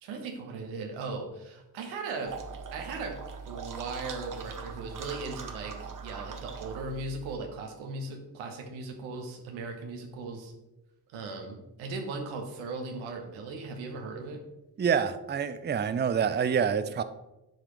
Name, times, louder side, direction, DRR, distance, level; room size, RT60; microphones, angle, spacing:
voice 1, 0.0-2.3 2.7-10.5 11.1-14.4 16.8-16.9, right 3 dB, 90° right, 3 dB, 1.1 m, -38 dB
sound 1, 2.3-7.4, right 5 dB, 45° right, 1.0 m, -41 dB
voice 2, 14.8-17.0, right 7 dB, 25° right, 11 dB, 0.5 m, -27 dB
9.0 x 4.9 x 3.1 m, 0.96 s
hypercardioid pair, 40°, 46 cm